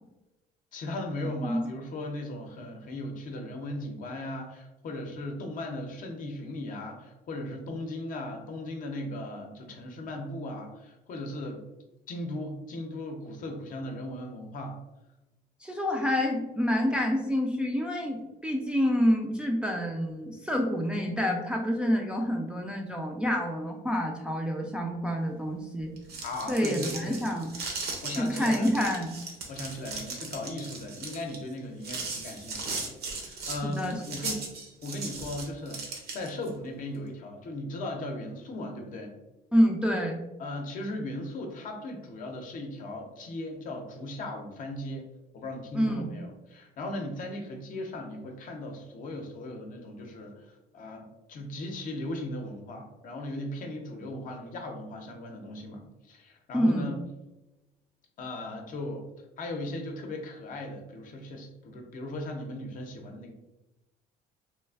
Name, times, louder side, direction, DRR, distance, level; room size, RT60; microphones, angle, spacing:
voice 1, 0.7-11.6 12.1-14.8 26.2-27.3 27.8-28.7 29.5-32.9 33.2-34.5 34.8-35.9 36.1-39.1 40.4-45.1 45.3-57.0 58.2-59.1 59.4-63.3, left 1 dB, 55° left, 3 dB, 0.6 m, -37 dB
voice 2, 15.6-25.9 26.5-27.5 28.1-29.2 33.6-34.0 39.5-40.2 45.7-46.1 56.5-56.9, equal, 5° right, 0 dB, 0.3 m, -27 dB
sound 1, 25.9-36.5, right 3 dB, 70° right, 0.7 m, -37 dB
3.1 x 2.4 x 2.3 m, 1.0 s
cardioid pair, 110°, 17 cm